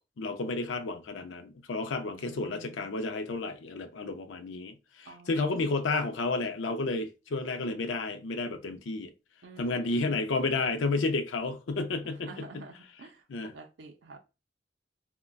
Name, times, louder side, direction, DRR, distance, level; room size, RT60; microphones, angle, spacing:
voice 1, 0.2-9.1 9.6-12.6 13.3-13.5, left 3 dB, 80° left, 0.5 m, -31 dB
voice 2, 2.1-2.9 5.0-5.9 9.4-10.2 12.0-14.2, right 3 dB, 70° right, 0.5 m, -50 dB
3.7 x 2.1 x 2.2 m
head